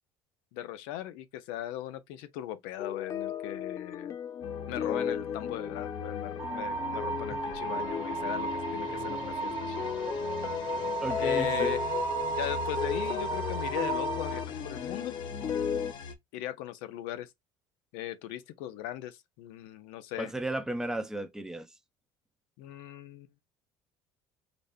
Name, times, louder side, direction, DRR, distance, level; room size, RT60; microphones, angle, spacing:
voice 1, 0.5-4.2 4.7-10.1 11.2-15.2 16.3-17.3 17.9-20.3 22.6-23.3, left 13 dB, 85° left, 0.6 m, -39 dB
sound 1, 2.8-15.9, left 7 dB, 35° left, 0.4 m, -35 dB
sound 2, 4.4-16.2, left 6 dB, 55° left, 0.8 m, -43 dB
sound 3, 6.4-14.4, right 5 dB, 50° right, 1.2 m, -35 dB
voice 2, 11.0-11.7 20.2-21.7, right 1 dB, 5° right, 0.7 m, -34 dB
4.0 x 2.1 x 3.4 m
cardioid pair, 120°, 9 cm